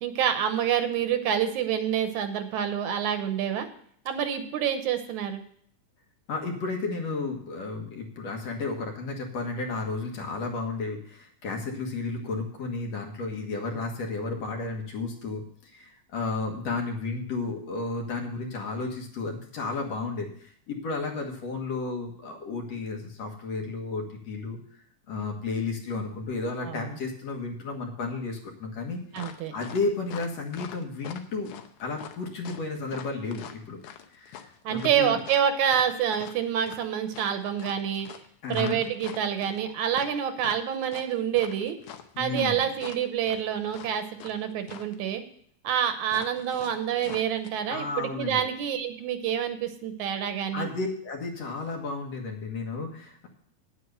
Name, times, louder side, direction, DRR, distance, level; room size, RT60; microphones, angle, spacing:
voice 1, 0.0-3.7 4.1-5.4 26.6-27.0 29.1-29.5 34.6-38.1 38.5-41.8 42.2-45.2 45.6-50.7, right 9 dB, 75° right, 8 dB, 2.3 m, -27 dB
voice 2, 6.3-24.6 25.1-29.0 29.5-31.5 31.8-33.8 34.1-35.2 38.4-38.8 42.1-42.6 47.7-48.4 50.5-53.3, left 3 dB, 60° left, 2 dB, 2.6 m, -33 dB
sound 1, 29.1-44.4 44.6-45.0 46.1-47.5, left 9 dB, 80° left, 2.3 m, -44 dB
9.5 x 8.1 x 6.6 m, 0.62 s
omnidirectional pair, 3.5 m